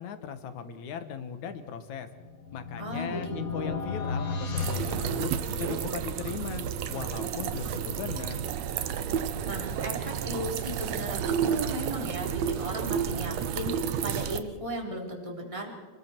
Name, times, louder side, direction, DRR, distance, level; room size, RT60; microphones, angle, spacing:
voice 1, 0.0-2.1 2.5-5.3 5.6-6.6 6.9-8.5, left 7 dB, 65° left, 9 dB, 2.6 m, -38 dB
sound 1, 2.1-5.9, left 5 dB, 40° left, 1.3 m, -34 dB
voice 2, 2.8-3.8 9.4-15.8, right 1 dB, 10° right, -1 dB, 3.8 m, -36 dB
sound 2, 4.6-14.4, right 8 dB, 65° right, 2.0 m, -31 dB
29.5 x 21.0 x 4.5 m, 1.4 s
omnidirectional pair, 3.8 m